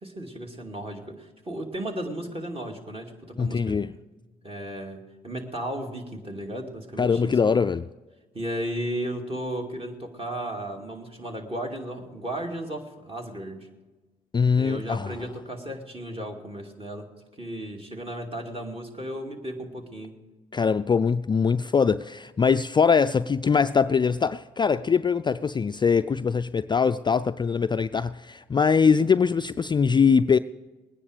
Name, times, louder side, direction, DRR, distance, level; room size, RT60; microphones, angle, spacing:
voice 1, 0.0-3.9 4.4-7.6 8.3-13.7 14.5-17.1 17.4-20.1, right 1 dB, 30° right, 2.5 m, -35 dB
voice 2, 3.4-3.9 7.0-7.8 14.3-15.1 20.5-30.4, left 6 dB, 25° left, 0.3 m, -22 dB
20.0 x 9.9 x 5.0 m
hypercardioid pair, 50°, 18 cm